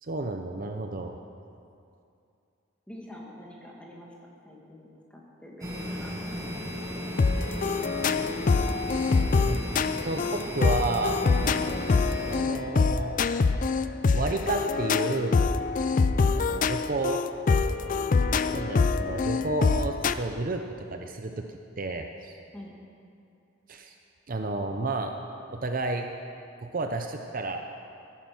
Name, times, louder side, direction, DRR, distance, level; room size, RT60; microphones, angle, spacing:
voice 1, 0.0-1.2 9.4-9.6 10.0-11.2 12.3-13.2 14.1-15.4 16.4-17.2 18.5-21.4 21.8-22.4 23.7-23.9 24.3-25.1 25.5-26.1 26.6-27.6, right 2 dB, 45° right, 4 dB, 0.7 m, -31 dB
voice 2, 2.9-4.1 4.4-7.5 22.5-22.7, left 1 dB, 5° left, -3 dB, 2.2 m, -46 dB
sound 1, 5.6-12.4, equal, 15° right, 1.7 m, -36 dB
sound 2, 7.2-20.1, left 4 dB, 40° left, 0.4 m, -25 dB
15.0 x 10.0 x 6.1 m, 2.6 s
head